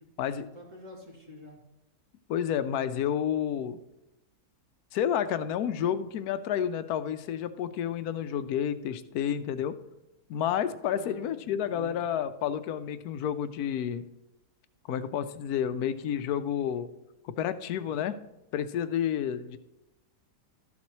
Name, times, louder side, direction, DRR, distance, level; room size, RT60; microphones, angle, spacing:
voice 1, 0.5-1.6 10.9-12.0, left 1 dB, 50° right, -1 dB, 2.2 m, -48 dB
voice 2, 2.3-3.8 4.9-9.7 10.3-14.0 14.9-16.9 17.4-18.2 18.5-19.6, left 9 dB, 75° left, 12 dB, 1.1 m, -30 dB
12.5 x 7.3 x 3.1 m, 0.92 s
omnidirectional pair, 1.7 m